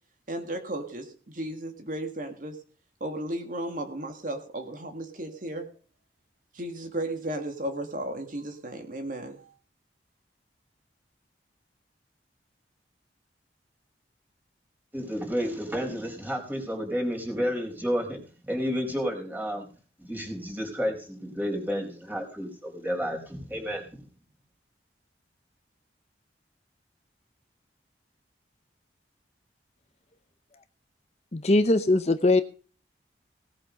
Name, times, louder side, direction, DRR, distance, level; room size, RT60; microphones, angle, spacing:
voice 1, 0.3-2.6 3.0-5.7 6.5-9.5, right 1 dB, 45° right, 5 dB, 2.0 m, -34 dB
voice 2, 14.9-18.2 18.5-19.7 20.0-24.0, equal, 10° right, 1 dB, 4.5 m, -31 dB
voice 3, 31.3-32.4, left 2 dB, 35° left, 10 dB, 0.7 m, -21 dB
18.0 x 8.5 x 5.3 m, 0.41 s
head